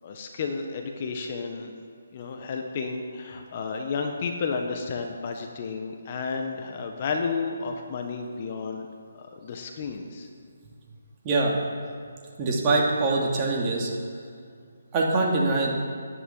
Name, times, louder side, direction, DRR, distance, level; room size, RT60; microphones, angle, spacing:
voice 1, 0.0-1.7 2.1-8.9 9.2-10.3, left 4 dB, 40° left, 3 dB, 1.4 m, -32 dB
voice 2, 11.2-11.6 12.4-13.9 14.9-15.8, right 3 dB, 25° right, -2 dB, 2.7 m, -23 dB
11.0 x 10.5 x 8.5 m, 2.2 s
figure-of-eight pair, 150°, 0 cm